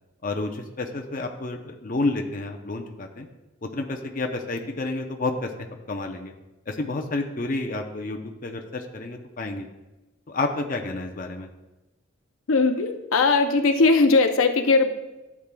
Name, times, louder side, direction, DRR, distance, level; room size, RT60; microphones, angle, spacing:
voice 1, 0.2-3.3 3.6-5.5 5.9-6.3 6.7-9.7 10.3-11.5, left 2 dB, 40° left, 3 dB, 0.6 m, -30 dB
voice 2, 12.5-14.9, left 3 dB, 80° left, 7 dB, 0.6 m, -19 dB
11.5 x 7.4 x 2.2 m, 1.0 s
head